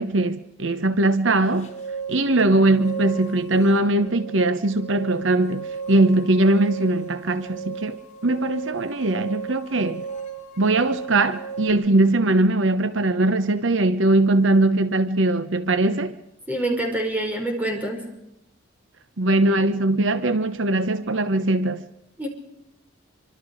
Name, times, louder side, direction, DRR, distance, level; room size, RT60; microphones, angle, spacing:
voice 1, 0.0-1.7 2.1-8.0 8.2-10.0 10.6-16.2 19.2-21.9, right 2 dB, 70° right, 1.0 m, -20 dB
sound 1, 1.4-11.7, right 5 dB, 40° left, 3.6 m, -36 dB
voice 2, 16.5-18.0 22.2-22.3, right 1 dB, 10° right, 5.5 m, -26 dB
25.5 x 25.0 x 4.9 m
head